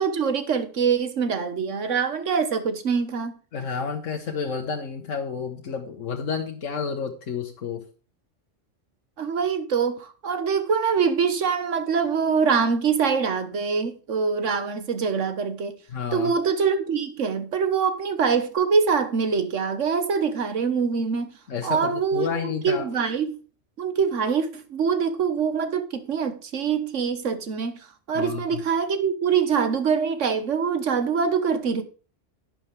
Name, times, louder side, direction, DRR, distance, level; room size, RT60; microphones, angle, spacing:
voice 1, 0.0-3.3 9.2-15.8 16.1-21.3 21.6-23.4 23.8-31.8, right 6 dB, 75° right, 1.5 m, -24 dB
voice 2, 3.5-7.9 15.9-16.3 21.5-22.9 28.1-28.6, left 6 dB, 85° left, 1.5 m, -30 dB
11.5 x 8.8 x 3.3 m
omnidirectional pair, 1.3 m